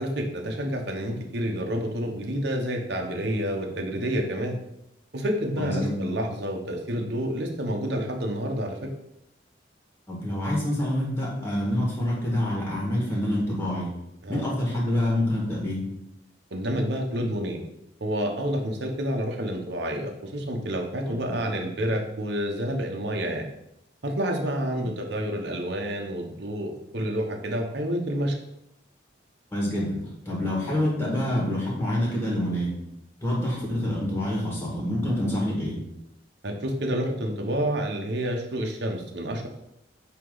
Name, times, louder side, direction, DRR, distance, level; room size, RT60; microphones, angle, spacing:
voice 1, 0.0-4.6 5.1-8.8 14.2-14.4 16.5-17.6 18.0-23.5 24.0-28.4 36.4-39.5, equal, 60° right, 2 dB, 1.0 m, -29 dB
voice 2, 5.6-6.0 10.1-13.9 14.3-15.8 21.1-21.4 29.5-30.0 30.3-32.7 33.2-35.8, left 1 dB, 15° left, -4 dB, 1.8 m, -27 dB
8.2 x 3.0 x 3.9 m, 0.81 s
head